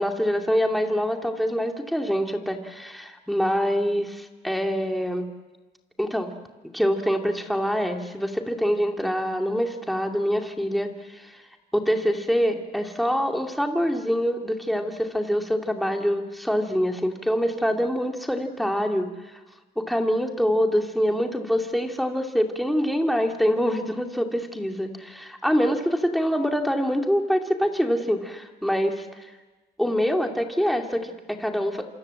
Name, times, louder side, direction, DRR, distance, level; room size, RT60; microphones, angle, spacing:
voice 1, 0.0-5.3 6.0-6.3 6.7-11.4 11.7-19.4 19.8-29.3 29.8-31.9, equal, ahead, 3 dB, 2.6 m, -25 dB
27.0 x 26.0 x 7.8 m, 1.2 s
cardioid pair, 110°, 17 cm